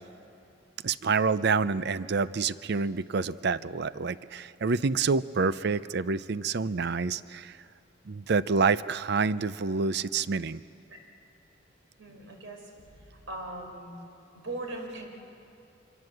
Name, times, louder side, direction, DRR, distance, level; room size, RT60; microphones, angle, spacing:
voice 1, 0.8-7.6 8.0-10.6, right 4 dB, 55° right, 16 dB, 0.6 m, -27 dB
voice 2, 12.0-12.6 13.3-13.9 14.4-15.0, right 2 dB, 80° right, 2 dB, 4.9 m, -39 dB
26.0 x 24.0 x 7.9 m, 2.6 s
head